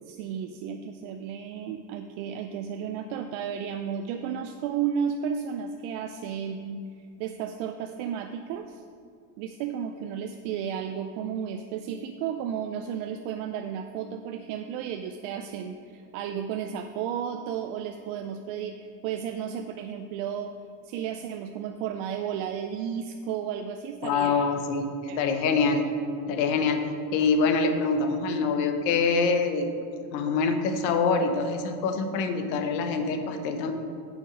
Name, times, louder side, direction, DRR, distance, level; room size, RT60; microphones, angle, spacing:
voice 1, 0.1-8.8 9.4-20.6 20.8-24.5 25.1-25.4, right 8 dB, 65° right, 6 dB, 0.6 m, -33 dB
voice 2, 24.0-25.9 26.3-26.8 27.1-29.7 30.1-33.7, left 4 dB, 85° left, 7 dB, 1.1 m, -25 dB
7.2 x 5.4 x 6.1 m, 2.3 s
supercardioid pair, 115°, 50 cm